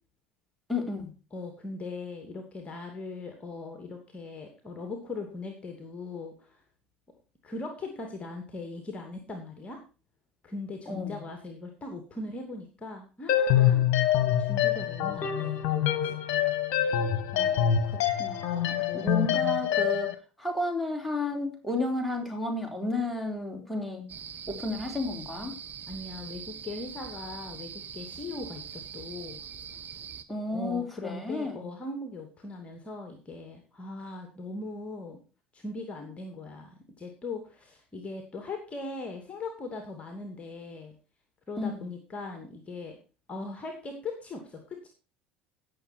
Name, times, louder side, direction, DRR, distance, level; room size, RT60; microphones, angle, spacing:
voice 1, 0.7-1.1 10.9-11.2 17.3-17.7 18.2-20.1 20.4-24.0 24.5-25.6 30.3-31.6 41.6-41.9, left 2 dB, ahead, 1 dB, 4.0 m, -32 dB
voice 2, 1.3-6.6 7.4-9.8 10.4-13.8 14.4-16.2 18.7-19.3 25.9-29.4 30.5-35.2 35.5-40.9 41.5-43.0 43.3-44.9, left 3 dB, 25° left, 4 dB, 2.6 m, -40 dB
sound 1, 13.3-20.1, left 10 dB, 50° left, 1.6 m, -25 dB
sound 2, 24.1-30.2, right 8 dB, 35° right, 1.2 m, -42 dB
17.5 x 6.9 x 4.5 m, 0.33 s
figure-of-eight pair, 65°, 5 cm